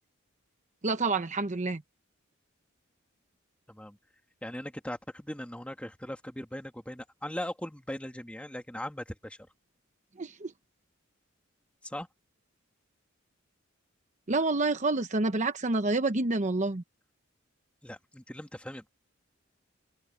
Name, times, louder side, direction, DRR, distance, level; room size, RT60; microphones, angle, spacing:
voice 1, 0.8-1.8 10.2-10.5 14.3-16.8, right 3 dB, 35° right, 0.9 m, -28 dB
voice 2, 4.4-9.4 11.8-12.1 17.8-18.9, left 1 dB, 5° left, 2.1 m, -39 dB
head